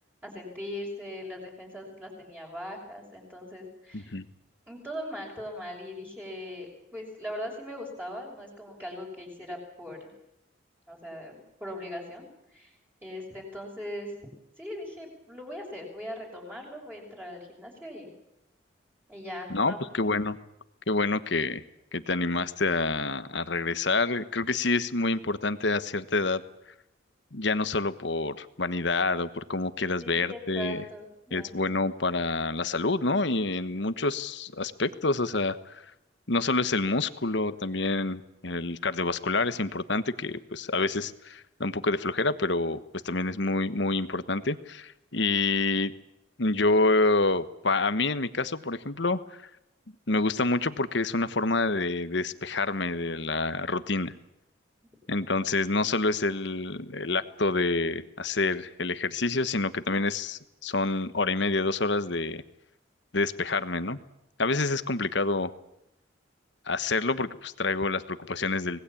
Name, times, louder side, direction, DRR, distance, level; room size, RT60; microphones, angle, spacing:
voice 1, 0.2-4.1 4.7-10.1 10.9-12.7 13.0-14.3 14.6-18.1 19.1-19.8 30.0-31.5 55.0-55.1, left 1 dB, 10° right, -1 dB, 5.9 m, -40 dB
voice 2, 3.9-4.2 19.5-20.4 20.9-21.6 21.9-26.4 27.3-30.8 31.3-35.8 36.3-42.8 43.0-45.9 46.4-49.2 50.1-54.1 55.1-62.4 63.1-64.0 64.4-65.5 66.7-68.8, left 3 dB, 65° left, 13 dB, 1.3 m, -27 dB
25.0 x 19.5 x 8.6 m, 0.83 s
head